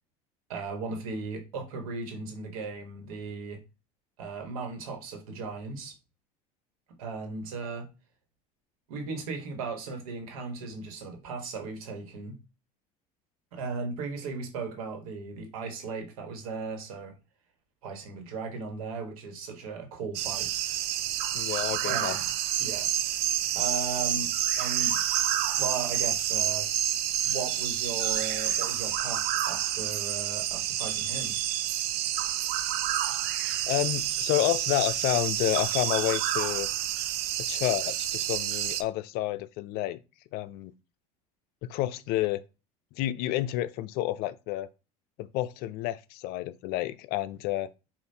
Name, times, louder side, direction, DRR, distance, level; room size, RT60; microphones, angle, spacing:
voice 1, 0.5-3.6 4.2-5.9 7.0-7.9 8.9-12.3 13.5-17.1 17.8-20.6 21.7-22.2 22.6-23.2 23.5-24.3 24.6-25.0 25.6-26.7 27.2-31.4, right 4 dB, 85° right, 1.3 m, -37 dB
sound 1, 20.1-38.8, right 11 dB, 65° right, 0.5 m, -29 dB
voice 2, 21.3-22.2 33.7-36.7 37.5-40.0 40.3-40.7 41.6-42.4 43.0-44.7 45.2-47.7, left 15 dB, 60° left, 0.4 m, -30 dB
5.3 x 2.5 x 2.8 m
supercardioid pair, 85°, 18 cm